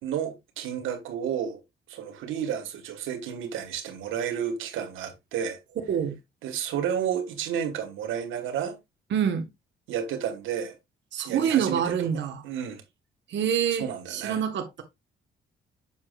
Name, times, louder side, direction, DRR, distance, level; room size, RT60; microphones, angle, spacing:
voice 1, 0.0-1.6 1.9-5.6 6.4-8.8 9.9-10.8 11.2-12.1 12.4-12.8 13.8-14.4, right 8 dB, 85° right, 1.3 m, -31 dB
voice 2, 9.1-9.5 11.1-12.4 13.3-14.8, right 8 dB, 65° right, 1.2 m, -26 dB
7.1 x 6.5 x 2.3 m
cardioid pair, 90°, 20 cm